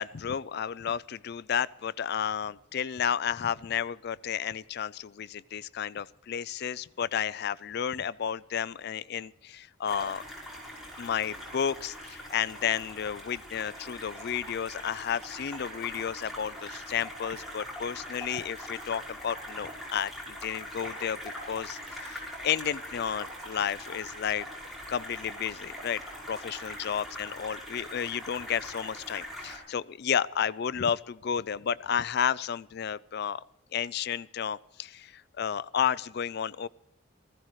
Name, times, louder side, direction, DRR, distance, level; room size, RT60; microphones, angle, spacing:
voice 1, 0.0-10.2 11.0-21.2 21.5-24.5 24.9-26.0 26.3-33.4 33.7-36.7, left 8 dB, 55° left, 19 dB, 0.4 m, -32 dB
sound 1, 9.9-29.6, equal, ahead, 5.6 m, -42 dB
19.5 x 15.5 x 3.2 m, 0.81 s
head